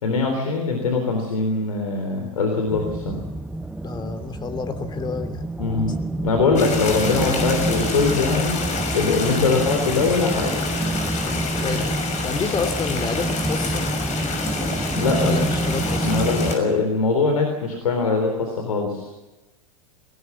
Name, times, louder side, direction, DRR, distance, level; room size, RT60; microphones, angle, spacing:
voice 1, 0.0-3.2 5.6-5.9 6.2-8.7 8.9-10.5 14.9-15.4 16.0-19.2, left 4 dB, 80° left, 4 dB, 3.7 m, -22 dB
sound 1, 2.7-16.6, right 2 dB, 5° right, 0.7 m, -27 dB
voice 2, 3.8-5.5 11.6-11.8 12.2-13.9 15.2-16.2, left 4 dB, 25° left, 8 dB, 2.9 m, -29 dB
sound 2, 6.6-16.6, left 4 dB, 40° left, 6.3 m, -28 dB
20.5 x 19.0 x 7.3 m, 1.1 s
hypercardioid pair, 95°, 19 cm